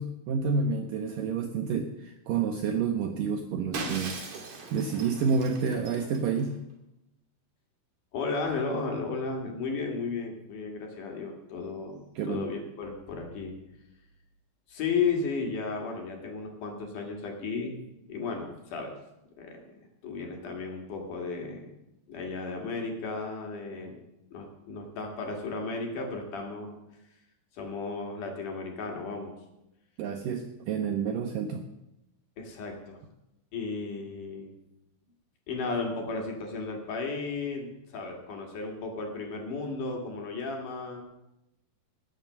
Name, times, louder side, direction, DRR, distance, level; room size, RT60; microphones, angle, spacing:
voice 1, 0.0-6.6 12.2-12.5 30.0-31.6, right 5 dB, 80° right, 5 dB, 2.0 m, -29 dB
Shatter, 3.7-6.4, right 3 dB, 50° right, 3.2 m, -39 dB
voice 2, 8.1-13.6 14.7-17.7 18.1-18.9 19.4-21.8 22.1-24.0 24.3-26.8 27.5-29.4 32.4-33.0 33.5-34.5 35.5-41.0, left 4 dB, 55° left, 2 dB, 3.0 m, -34 dB
19.0 x 6.6 x 6.6 m, 0.91 s
omnidirectional pair, 4.7 m